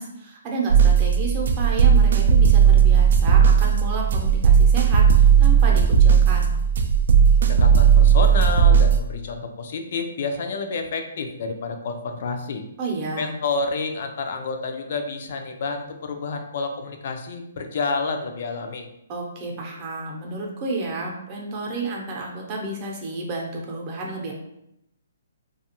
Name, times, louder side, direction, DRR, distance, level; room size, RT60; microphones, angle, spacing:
voice 1, 0.0-6.5 12.8-13.4 19.1-24.3, right 3 dB, 35° right, -1 dB, 0.7 m, -31 dB
sound 1, 0.7-9.0, right 7 dB, 65° right, 0.3 m, -16 dB
voice 2, 7.4-12.6 13.2-18.9, left 4 dB, 55° left, 5 dB, 0.4 m, -29 dB
2.5 x 2.3 x 2.8 m, 0.81 s
hypercardioid pair, 135°, 0 cm